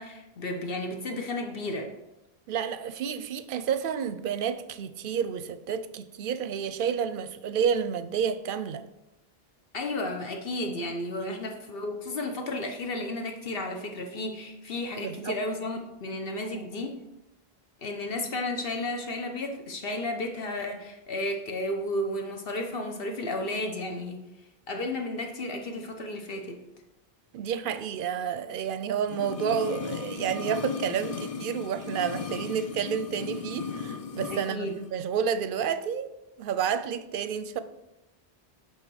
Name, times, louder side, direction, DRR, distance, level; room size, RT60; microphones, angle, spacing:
voice 1, 0.0-1.9 9.7-17.0 17.8-24.2 24.7-26.6 34.3-34.7, left 1 dB, 65° left, 1.1 m, -33 dB
voice 2, 2.5-8.8 11.2-11.4 15.0-15.4 27.3-36.1 36.4-37.6, right 7 dB, 65° right, 0.7 m, -30 dB
sound 1, 29.0-34.5 34.8-34.9, left 6 dB, 50° left, 0.4 m, -36 dB
8.3 x 3.3 x 6.2 m
omnidirectional pair, 1.0 m